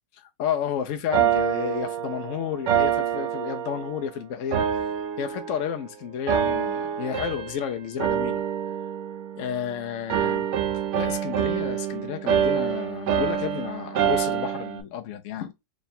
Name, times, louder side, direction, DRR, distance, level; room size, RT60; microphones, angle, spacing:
voice 1, 0.1-4.7 5.2-8.4 9.4-10.5 10.7-15.5, left 8 dB, 70° left, 0.8 m, -31 dB
sound 1, 1.1-4.1 4.5-5.9 6.3-7.7 8.0-9.7 10.1-14.8, right 9 dB, 70° right, 0.7 m, -26 dB
3.7 x 2.3 x 3.9 m
omnidirectional pair, 1.9 m